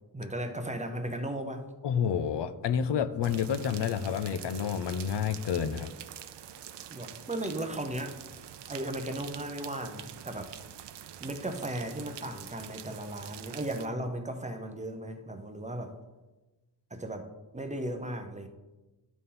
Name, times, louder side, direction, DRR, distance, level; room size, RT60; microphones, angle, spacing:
voice 1, 0.1-1.6 6.9-8.2 8.7-10.6 11.2-16.0 16.9-17.3 17.5-18.5, right 1 dB, 20° right, 5 dB, 0.5 m, -36 dB
voice 2, 1.8-5.9, left 8 dB, 85° left, 11 dB, 0.6 m, -29 dB
sound 1, 3.2-13.9, right 10 dB, 80° right, 0.5 m, -46 dB
12.5 x 4.2 x 3.7 m, 1.1 s
wide cardioid pair, 180°, 41 cm